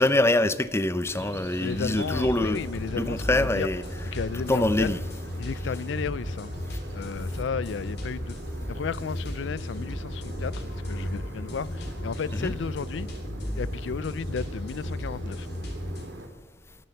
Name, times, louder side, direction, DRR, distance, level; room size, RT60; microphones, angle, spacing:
voice 1, 0.0-2.6 3.0-3.8 4.5-5.0 12.3-12.5, left 1 dB, 15° left, 0.6 m, -24 dB
sound 1, 1.1-16.3, right 1 dB, 75° right, 3.3 m, -42 dB
voice 2, 1.6-3.7 4.1-5.0 5.4-6.5 6.9-8.3 8.7-13.1 13.6-15.5, left 6 dB, 80° left, 0.4 m, -33 dB
sound 2, 1.7-16.0, left 1 dB, 65° left, 4.1 m, -35 dB
23.0 x 7.7 x 7.1 m
head